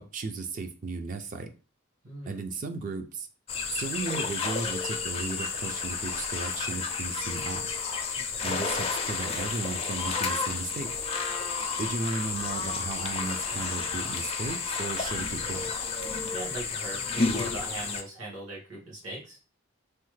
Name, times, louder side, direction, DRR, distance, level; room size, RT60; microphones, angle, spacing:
voice 1, 0.0-1.5 2.3-3.3 3.7-7.7 8.4-10.9 11.8-15.7, right 3 dB, 40° right, 6 dB, 0.4 m, -35 dB
voice 2, 2.0-2.4 8.1-8.5 16.3-19.4, right 2 dB, 80° right, -6 dB, 1.5 m, -39 dB
sound 1, 3.5-18.0, left 5 dB, 30° left, 0.4 m, -31 dB
3.2 x 2.1 x 3.1 m, 0.35 s
head